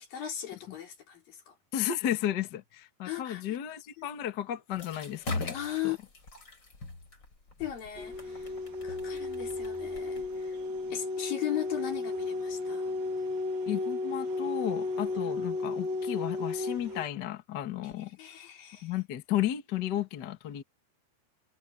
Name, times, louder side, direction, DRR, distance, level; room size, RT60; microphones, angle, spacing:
voice 1, 0.0-1.5 3.0-3.4 4.0-4.1 5.5-6.0 7.6-8.5 8.8-10.6 10.9-12.9 15.2-15.4 18.0-18.9, left 12 dB, 60° left, 5.2 m, -38 dB
voice 2, 1.7-5.5 5.8-5.9 13.7-18.1 18.8-20.6, left 11 dB, 75° left, 0.9 m, -33 dB
sound 1, 4.7-10.9, left 3 dB, 25° left, 4.8 m, -41 dB
sound 2, 8.0-17.1, left 3 dB, 60° right, 4.6 m, -34 dB
omnidirectional pair, 4.5 m